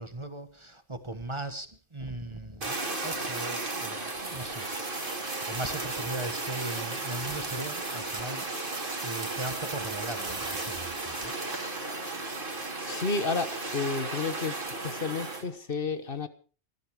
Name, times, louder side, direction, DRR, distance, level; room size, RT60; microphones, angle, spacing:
voice 1, 0.0-5.1 5.5-8.8 9.0-11.3, right 2 dB, 25° right, 1.4 m, -39 dB
Fire, 2.6-15.4, right 2 dB, 50° right, 2.7 m, -34 dB
voice 2, 12.9-14.5 14.8-16.3, left 4 dB, 55° left, 1.4 m, -31 dB
21.0 x 14.0 x 4.8 m
omnidirectional pair, 1.2 m